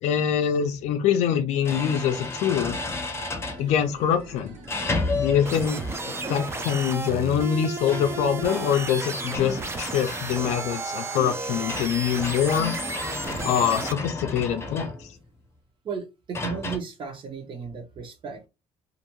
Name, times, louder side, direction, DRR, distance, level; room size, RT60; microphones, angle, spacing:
voice 1, 0.0-2.8 3.6-4.5 5.1-5.8 6.3-12.7 13.4-15.1, left 8 dB, 70° left, 0.4 m, -24 dB
sound 1, 0.7-0.8 1.6-3.7 4.7-6.9 7.8-10.8 11.7-15.3 16.3-16.8, left 3 dB, 20° left, 0.7 m, -33 dB
sound 2, 3.4-6.5 6.8-6.9, right 3 dB, 60° right, 1.1 m, -47 dB
sound 3, 5.4-13.9, right 3 dB, 20° right, 0.4 m, -33 dB
voice 2, 15.8-18.5, right 5 dB, 45° right, 0.8 m, -34 dB
2.5 x 2.2 x 3.0 m
cardioid pair, 120°, 12 cm